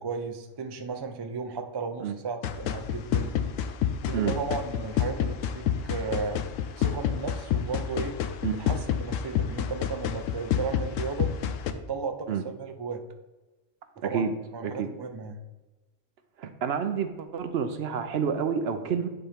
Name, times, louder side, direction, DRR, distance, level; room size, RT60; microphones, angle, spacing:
voice 1, 0.0-3.4 4.1-6.4 6.8-8.2 8.6-11.3 11.7-13.0 14.0-14.3 14.5-15.4, right 5 dB, 40° right, 5 dB, 0.3 m, -34 dB
sound 1, 2.4-11.7, left 9 dB, 85° left, 1.0 m, -29 dB
voice 2, 16.4-19.1, right 7 dB, 65° right, 8 dB, 0.7 m, -29 dB
9.7 x 4.3 x 3.5 m, 1.2 s
omnidirectional pair, 1.3 m